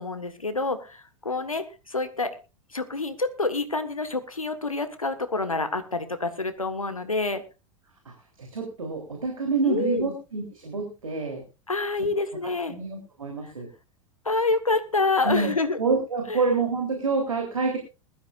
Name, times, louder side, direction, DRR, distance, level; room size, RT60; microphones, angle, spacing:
voice 1, 0.0-2.3 2.7-7.4 9.6-10.1 11.7-12.8 13.4-13.5 14.2-15.8 16.3-16.4, left 3 dB, 90° left, 10 dB, 1.5 m, -27 dB
voice 2, 8.4-11.4 12.7-13.7 15.2-15.5 15.8-17.8, right 4 dB, 80° right, 2 dB, 3.4 m, -27 dB
20.5 x 13.0 x 2.5 m, 0.30 s
figure-of-eight pair, 90°, 17 cm